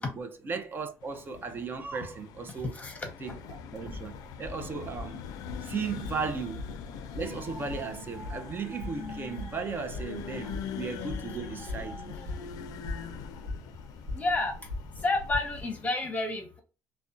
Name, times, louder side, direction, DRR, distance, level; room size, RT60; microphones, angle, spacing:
voice 1, 0.0-2.7 3.2-5.2 5.6-6.6 7.1-12.3 12.8-13.0, right 5 dB, 35° right, 0.5 m, -36 dB
sound 1, 1.0-15.9, left 7 dB, 75° left, 0.4 m, -43 dB
voice 2, 2.7-3.1 14.1-14.5 15.0-16.6, left 2 dB, 25° left, 0.8 m, -30 dB
sound 2, 3.8-15.6, left 2 dB, 85° right, 0.8 m, -42 dB
2.4 x 2.1 x 2.5 m
cardioid pair, 105°, 6 cm